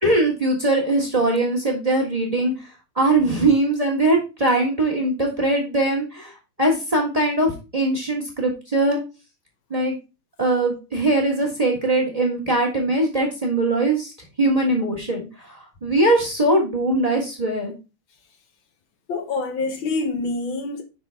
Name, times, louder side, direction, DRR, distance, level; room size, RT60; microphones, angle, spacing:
voice 1, 0.0-2.7 2.9-6.3 6.6-9.0 9.7-9.9 10.4-14.1 14.4-17.7, right 2 dB, 20° right, 1.5 m, -21 dB
voice 2, 19.1-20.8, left 3 dB, 70° left, 1.6 m, -26 dB
5.8 x 5.4 x 3.4 m
omnidirectional pair, 2.3 m